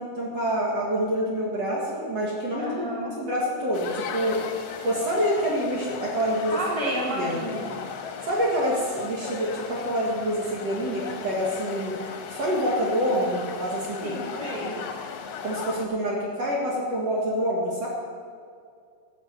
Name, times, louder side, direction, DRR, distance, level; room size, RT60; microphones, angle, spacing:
voice 1, 0.0-2.9 3.2-4.4 4.8-6.6 7.1-7.4 8.2-11.9 12.3-14.7 15.4-17.9, equal, 50° right, -4 dB, 2.5 m, -27 dB
voice 2, 2.6-3.2 6.5-7.7 14.0-14.8, equal, 10° left, -5 dB, 1.9 m, -31 dB
sound 1, 3.7-15.9, left 6 dB, 65° left, 2.0 m, -37 dB
14.5 x 6.6 x 8.1 m, 2.2 s
omnidirectional pair, 4.5 m